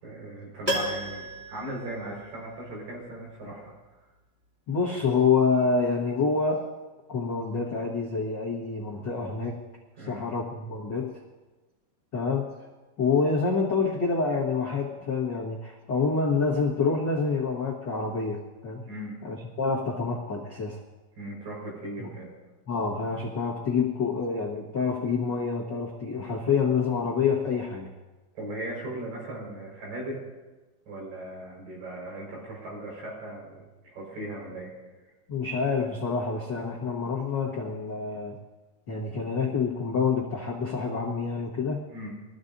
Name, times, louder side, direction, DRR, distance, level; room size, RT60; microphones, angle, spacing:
voice 1, 0.0-3.7 10.0-10.3 18.8-19.2 21.2-22.3 28.3-30.2 30.9-34.7 41.9-42.1, right 1 dB, 70° right, -3 dB, 6.6 m, -38 dB
Piano, 0.6-2.7 3.0-3.1, equal, 20° right, 1.7 m, -33 dB
voice 2, 4.7-6.7 7.1-9.6 10.0-11.2 12.1-12.5 13.0-18.8 19.2-20.8 22.0-22.1 22.7-27.9 35.3-38.4 38.9-41.8, left 5 dB, 75° left, -3 dB, 1.0 m, -27 dB
22.5 x 14.0 x 2.7 m, 1.2 s
omnidirectional pair, 4.2 m